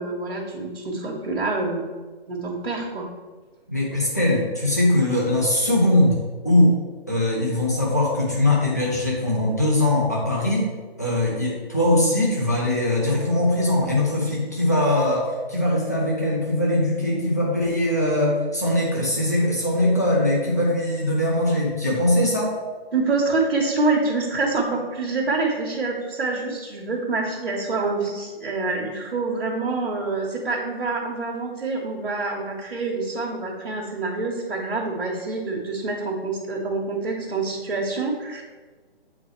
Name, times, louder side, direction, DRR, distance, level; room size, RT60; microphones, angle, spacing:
voice 1, 0.0-1.9 2.3-3.1 22.9-38.4, right 3 dB, 70° right, -4 dB, 1.2 m, -26 dB
voice 2, 3.7-6.8 7.1-10.6 11.0-22.5, left 1 dB, 15° left, -5 dB, 0.5 m, -21 dB
8.6 x 3.9 x 3.2 m, 1.4 s
hypercardioid pair, 175°, 31 cm